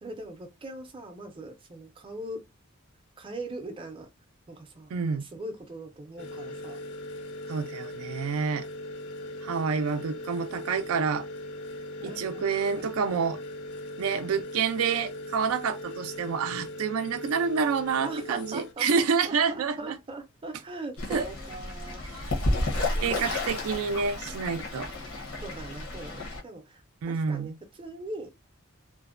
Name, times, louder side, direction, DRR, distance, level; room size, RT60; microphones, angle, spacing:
voice 1, 0.0-2.4 3.2-4.1 4.5-6.8 12.0-12.9 18.0-18.9 19.2-22.0 22.8-23.2 25.4-27.5 27.8-28.3, right 2 dB, 25° right, 0.5 m, -40 dB
voice 2, 4.9-5.3 7.5-8.7 9.4-11.3 12.0-13.4 14.0-20.0 21.1-21.3 22.1-22.2 23.0-24.9 27.0-27.6, right 6 dB, 90° right, 0.4 m, -28 dB
sound 1, 6.2-18.7, left 1 dB, 55° left, 0.4 m, -39 dB
Fowl / Bird, 21.0-26.4, left 2 dB, 80° left, 0.8 m, -32 dB
2.5 x 2.0 x 2.4 m
head